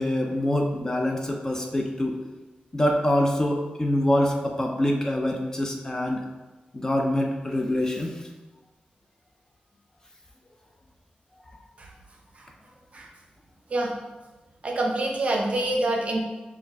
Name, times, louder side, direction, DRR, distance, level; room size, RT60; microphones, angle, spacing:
voice 1, 0.0-2.2 2.7-6.2 6.7-8.2, left 1 dB, 20° left, 2 dB, 0.3 m, -25 dB
voice 2, 14.6-16.2, right 2 dB, 45° right, 0 dB, 0.6 m, -26 dB
4.0 x 2.4 x 3.4 m, 1.1 s
wide cardioid pair, 145°, 3 cm